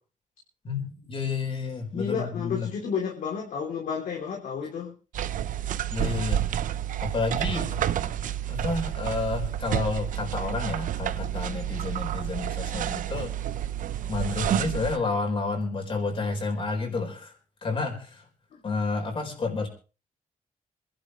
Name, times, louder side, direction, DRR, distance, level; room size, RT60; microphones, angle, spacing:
voice 1, 0.6-2.7 5.9-6.4 7.0-7.8 8.5-13.3 14.1-17.3 17.6-18.2 18.6-19.7, left 4 dB, 40° left, 4 dB, 4.5 m, -30 dB
voice 2, 1.9-4.9, left 6 dB, 80° left, -1 dB, 3.4 m, -31 dB
sound 1, 5.1-15.0, right 11 dB, 80° right, 0.7 m, -29 dB
26.5 x 11.5 x 3.2 m, 0.35 s
wide cardioid pair, 140°, 13 cm